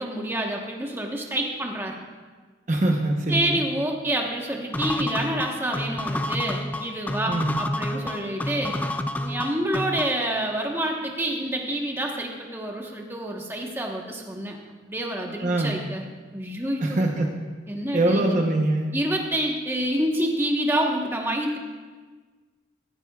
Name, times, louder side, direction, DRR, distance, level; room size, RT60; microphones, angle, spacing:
voice 1, 0.0-1.9 3.3-8.8 9.2-16.0 16.3-17.0 17.7-18.4 18.9-21.6, right 1 dB, 10° right, 0 dB, 1.2 m, -28 dB
voice 2, 2.7-3.6 7.3-7.6 15.4-15.8 16.8-17.3 17.9-18.9, right 1 dB, 40° right, 2 dB, 0.9 m, -23 dB
sound 1, 4.7-10.3, left 1 dB, 10° left, 0.3 m, -29 dB
15.0 x 15.0 x 2.4 m, 1.4 s
head